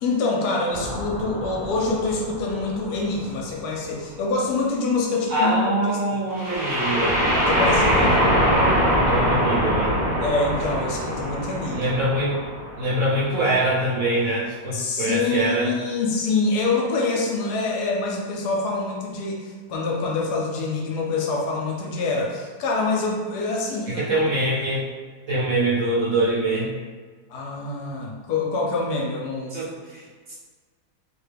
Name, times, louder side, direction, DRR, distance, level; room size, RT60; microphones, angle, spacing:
voice 1, 0.0-6.0 7.5-8.4 10.2-11.9 14.7-24.1 27.3-29.6, left 3 dB, 75° left, -2 dB, 1.1 m, -25 dB
sound 1, 0.7-3.6 6.3-13.2, equal, ahead, 0.8 m, -23 dB
voice 2, 5.3-7.2 9.0-10.0 11.7-12.3 12.8-15.7 23.9-24.8 25.3-26.7 29.5-30.3, right 1 dB, 55° right, -9 dB, 1.2 m, -24 dB
2.9 x 2.2 x 3.3 m, 1.5 s
omnidirectional pair, 1.8 m